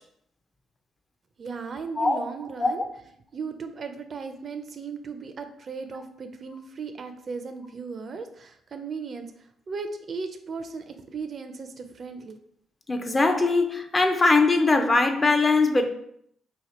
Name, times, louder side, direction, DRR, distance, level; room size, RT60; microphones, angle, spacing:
voice 1, 1.4-2.8 3.3-12.4, right 5 dB, 45° right, 0.4 m, -36 dB
voice 2, 12.9-15.9, left 3 dB, 25° left, 0.4 m, -21 dB
2.8 x 2.4 x 4.1 m
cardioid pair, 90°, 0 cm